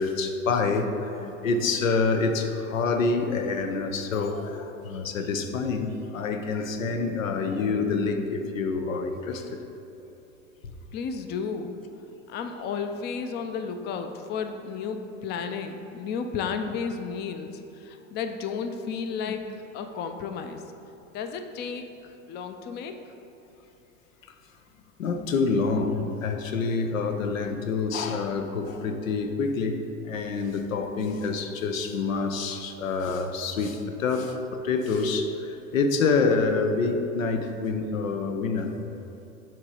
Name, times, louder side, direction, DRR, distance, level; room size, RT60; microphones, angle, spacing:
voice 1, 0.0-9.6 19.3-19.4 25.0-38.7, left 4 dB, 90° left, 6 dB, 0.6 m, -27 dB
voice 2, 10.9-11.8 12.3-19.5 19.7-20.6 21.1-23.0, left 6 dB, 25° left, 7 dB, 0.4 m, -33 dB
7.8 x 2.9 x 4.9 m, 2.9 s
hypercardioid pair, 95°, 39 cm